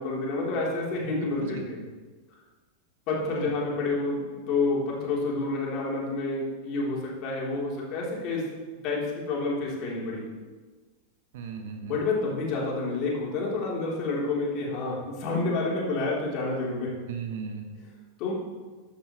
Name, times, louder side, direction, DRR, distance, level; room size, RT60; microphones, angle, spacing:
voice 1, 0.0-1.8 3.1-8.5 8.8-10.3 11.8-16.9 18.2-18.3, left 3 dB, 40° left, -3 dB, 3.8 m, -29 dB
voice 2, 3.2-3.5 11.3-12.0 17.1-17.7, right 5 dB, 55° right, 5 dB, 1.5 m, -37 dB
13.5 x 12.0 x 3.3 m, 1.4 s
figure-of-eight pair, 90°, 0 cm